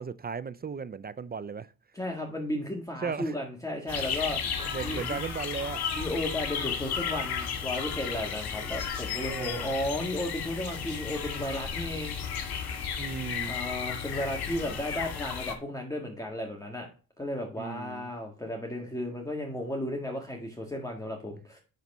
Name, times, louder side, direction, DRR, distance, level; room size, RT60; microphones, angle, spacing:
voice 1, 0.0-1.7 3.0-3.4 4.6-5.8 9.3-9.7 13.0-13.5 17.6-18.1, right 5 dB, 25° right, 0.4 m, -36 dB
voice 2, 1.9-4.4 4.8-5.2 5.9-12.2 13.5-16.9 17.2-21.6, left 1 dB, 10° left, 1.8 m, -34 dB
sound 1, 3.9-15.5, left 7 dB, 80° left, 2.2 m, -34 dB
10.5 x 4.1 x 5.4 m
cardioid pair, 90°, 37 cm